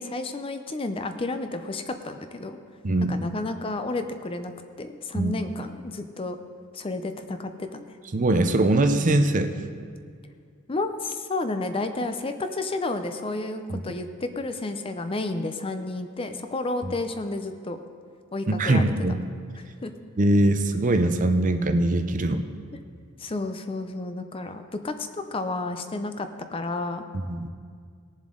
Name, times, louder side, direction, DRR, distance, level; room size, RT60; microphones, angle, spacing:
voice 1, 0.0-2.6 3.1-4.5 4.8-6.4 6.7-7.8 10.7-17.8 18.3-18.9 19.6-19.9 23.2-27.0, left 2 dB, 25° left, 8 dB, 0.5 m, -31 dB
voice 2, 2.8-3.2 5.1-5.3 8.1-9.5 13.7-13.8 16.8-16.9 18.5-19.2 20.2-22.4 27.1-27.5, right 2 dB, 35° right, 8 dB, 0.6 m, -22 dB
19.0 x 7.2 x 3.8 m, 2.1 s
head